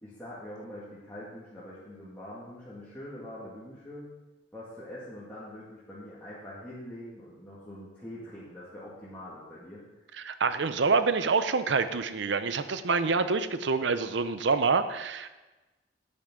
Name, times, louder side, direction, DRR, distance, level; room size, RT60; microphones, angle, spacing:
voice 1, 0.0-4.1 4.5-9.8, left 1 dB, 10° left, -11 dB, 2.1 m, -44 dB
voice 2, 10.2-15.3, right 4 dB, 75° right, 11 dB, 0.6 m, -26 dB
10.0 x 9.0 x 3.8 m, 1.1 s
head